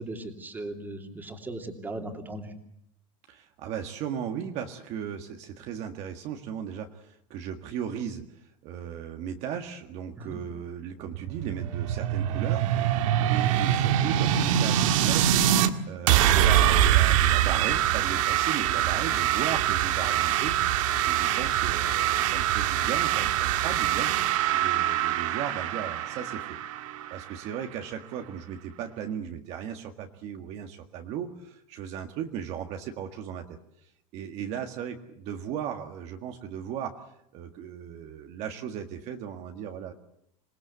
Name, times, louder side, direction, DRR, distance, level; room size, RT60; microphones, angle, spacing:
voice 1, 0.0-2.5 10.2-10.4, right 2 dB, 10° right, 4 dB, 2.8 m, -38 dB
voice 2, 3.3-26.6 27.1-37.0 37.3-39.9, right 8 dB, 40° right, 5 dB, 1.8 m, -36 dB
sound 1, 11.1-15.7 16.1-27.6, right 11 dB, 85° right, 1.9 m, -24 dB
27.0 x 20.0 x 8.3 m, 0.76 s
cardioid pair, 170°, 17 cm